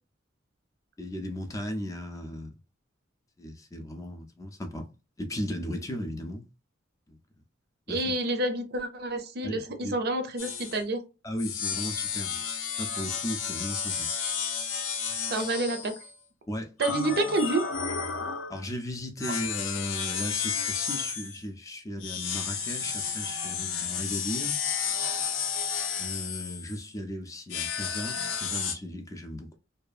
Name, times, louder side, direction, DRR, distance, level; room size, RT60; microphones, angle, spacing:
voice 1, 1.0-2.6 3.4-4.9 5.2-6.4 7.1-7.2 7.9-8.1 9.4-10.1 11.2-12.4 12.8-14.1 15.1-15.3 16.5-16.7 18.5-24.6 26.0-29.6, left 1 dB, 15° left, 0.4 m, -36 dB
voice 2, 7.9-11.0 15.3-16.0 16.8-17.6, right 2 dB, 55° right, 0.5 m, -28 dB
sound 1, 10.4-10.8 11.4-16.1 16.8-18.6 19.2-21.4 22.0-26.9 27.5-28.7, left 6 dB, 85° left, 0.6 m, -32 dB
2.7 x 2.3 x 2.3 m
head